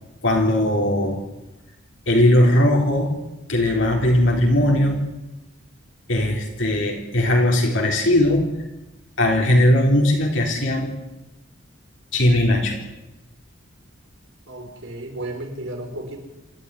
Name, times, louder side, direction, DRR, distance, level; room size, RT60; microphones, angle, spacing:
voice 1, 0.2-1.2 2.1-3.1 3.5-5.0 6.1-8.5 9.2-10.9 12.1-12.8, left 1 dB, 65° left, 0 dB, 3.8 m, -18 dB
voice 2, 14.5-16.2, right 1 dB, 70° right, 3 dB, 5.2 m, -33 dB
26.5 x 13.5 x 9.9 m, 0.98 s
head